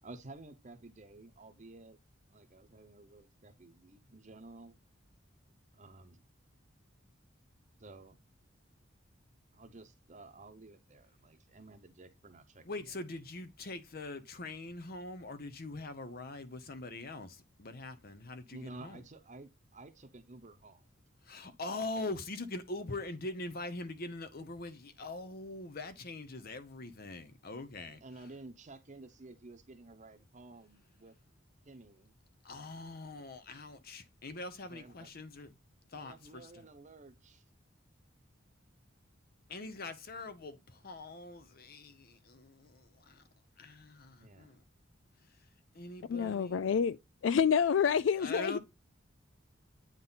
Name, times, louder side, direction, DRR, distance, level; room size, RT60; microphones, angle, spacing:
voice 1, 0.0-2.0 2.3-4.7 5.7-6.2 7.8-8.2 9.5-12.9 18.5-21.1 27.8-31.1 31.6-32.1 34.7-35.1 35.9-37.4 44.2-44.6, right 2 dB, 35° right, 0.9 m, -52 dB
voice 2, 12.6-19.0 21.2-28.0 32.4-35.5 35.9-36.6 39.5-43.2 43.6-44.6 45.7-46.6 48.2-48.6, left 2 dB, 50° left, 0.9 m, -43 dB
voice 3, 46.1-47.0 47.2-48.6, left 7 dB, 65° left, 0.3 m, -28 dB
8.9 x 3.8 x 4.0 m
head